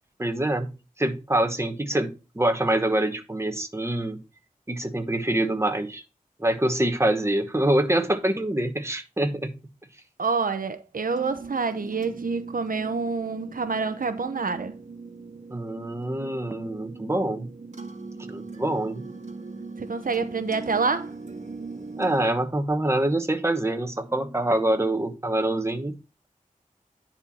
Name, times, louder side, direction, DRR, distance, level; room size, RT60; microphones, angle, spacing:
voice 1, 0.2-4.2 4.7-6.0 6.4-9.5 15.5-17.5 18.3-19.0 22.0-25.9, right 1 dB, 20° right, 1.2 m, -25 dB
voice 2, 10.2-14.7 19.8-21.1, right 4 dB, 75° right, 0.7 m, -27 dB
sound 1, 11.1-22.3, right 4 dB, 55° right, 1.5 m, -40 dB
9.9 x 4.5 x 4.2 m
wide cardioid pair, 50°, 14 cm